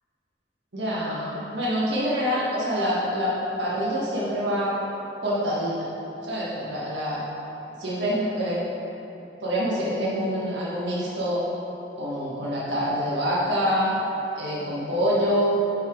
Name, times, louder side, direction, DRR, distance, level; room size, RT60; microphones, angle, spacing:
voice 1, 0.7-4.8 5.2-5.9 6.2-7.2 7.8-8.6 9.4-11.4 12.0-13.9 14.4-15.6, equal, 80° right, -7 dB, 1.5 m, -26 dB
5.7 x 5.6 x 4.5 m, 2.8 s
head